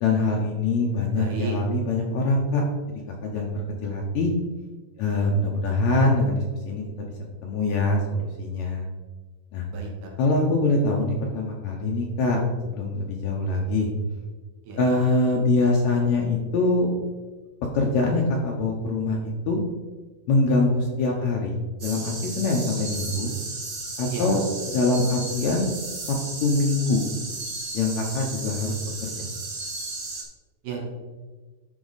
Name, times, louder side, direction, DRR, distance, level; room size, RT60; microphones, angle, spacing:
voice 1, 0.0-2.6 3.2-4.3 5.0-7.1 7.4-8.9 9.5-9.6 10.2-13.9 14.8-16.9 17.7-19.6 20.3-23.3 24.0-24.4 24.7-25.7 26.1-26.2 26.4-27.0 27.7-28.8 29.2-29.3, left 2 dB, 70° left, -1 dB, 1.9 m, -24 dB
voice 2, 1.1-1.6 9.7-9.9 14.6-15.0 24.1-24.4 30.6-30.9, right 4 dB, 80° right, -1 dB, 2.9 m, -32 dB
sound 1, 21.8-30.2, right 3 dB, 55° right, 0.8 m, -34 dB
11.0 x 4.2 x 4.0 m, 1.3 s
omnidirectional pair, 3.7 m